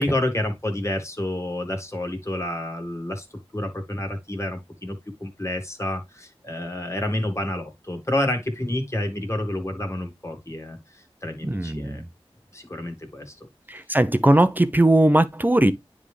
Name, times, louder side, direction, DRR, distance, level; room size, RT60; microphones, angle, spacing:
voice 1, 0.0-3.3 3.5-12.0 12.5-13.4, left 1 dB, 25° left, 2.1 m, -29 dB
voice 2, 11.4-12.1 13.7-15.7, right 1 dB, 15° right, 0.8 m, -19 dB
9.8 x 3.6 x 3.3 m
wide cardioid pair, 55°, 10 cm